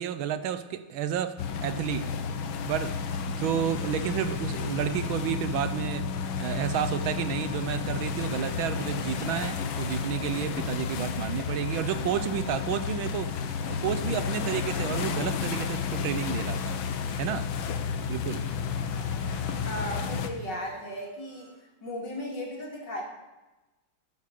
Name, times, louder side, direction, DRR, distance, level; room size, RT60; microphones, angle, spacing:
voice 1, 0.0-2.1 2.7-3.0 3.3-6.1 6.4-16.8 17.2-17.5 18.1-18.5, right 9 dB, 75° right, 12 dB, 1.5 m, -31 dB
sound 1, 1.4-20.3, left 6 dB, 75° left, 1.7 m, -32 dB
sound 2, 14.7-18.2 18.6-21.6, right 2 dB, 25° right, 6.0 m, -54 dB
voice 2, 19.6-21.5 21.8-23.0, left 1 dB, 55° left, -1 dB, 3.2 m, -35 dB
12.5 x 9.6 x 6.6 m, 1.1 s
omnidirectional pair, 2.3 m